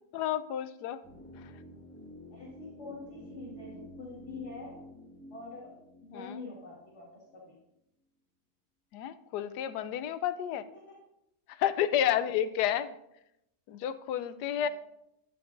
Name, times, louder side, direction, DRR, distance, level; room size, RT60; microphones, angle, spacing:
voice 1, 0.1-1.0 6.1-6.4 8.9-10.6 11.5-12.9 13.7-14.7, left 10 dB, 85° left, 13 dB, 1.1 m, -30 dB
sound 1, 1.0-7.1 7.3-7.4, equal, 5° left, 1.4 m, -49 dB
voice 2, 2.3-4.8 5.3-7.6 10.7-11.0 12.0-12.1 14.6-14.7, left 3 dB, 45° left, -5 dB, 2.0 m, -46 dB
11.0 x 10.0 x 2.5 m, 0.84 s
omnidirectional pair, 1.7 m